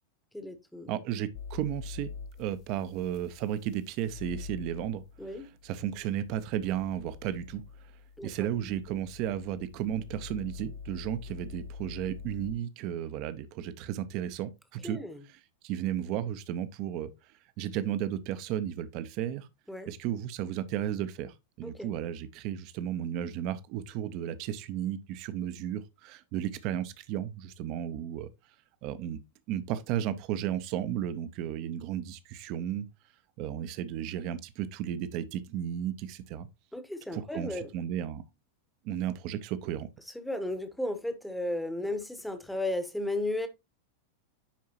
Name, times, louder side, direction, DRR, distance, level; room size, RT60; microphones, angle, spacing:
voice 1, 0.3-0.9 5.2-5.5 8.2-8.5 14.8-15.2 19.7-19.9 21.6-21.9 36.7-37.7 40.1-43.5, left 1 dB, 5° left, 1.1 m, -34 dB
voice 2, 0.9-2.1 2.4-5.0 5.6-7.6 8.2-15.0 15.6-17.1 17.6-19.5 19.9-28.3 28.8-29.2 29.5-32.9 33.4-36.5 37.1-38.2 38.8-39.9, right 10 dB, 40° right, 0.8 m, -34 dB
sound 1, 1.3-12.5, left 5 dB, 40° left, 0.5 m, -45 dB
10.5 x 4.7 x 2.9 m
figure-of-eight pair, 90°, 0 cm